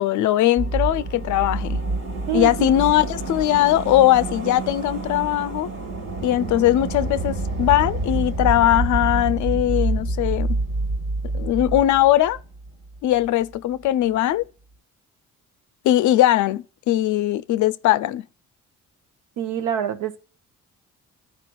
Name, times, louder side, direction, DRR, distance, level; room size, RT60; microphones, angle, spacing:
voice 1, 0.0-1.8 2.3-5.7 6.2-10.6 11.3-12.4 13.0-14.4 15.8-18.2, left 13 dB, 75° left, 0.5 m, -20 dB
sound 1, 0.6-13.0 13.2-13.3, right 2 dB, 60° right, 1.5 m, -27 dB
voice 2, 2.3-2.7 19.4-20.2, right 10 dB, 80° right, 0.8 m, -25 dB
14.0 x 4.8 x 2.3 m
cardioid pair, 90°, 30 cm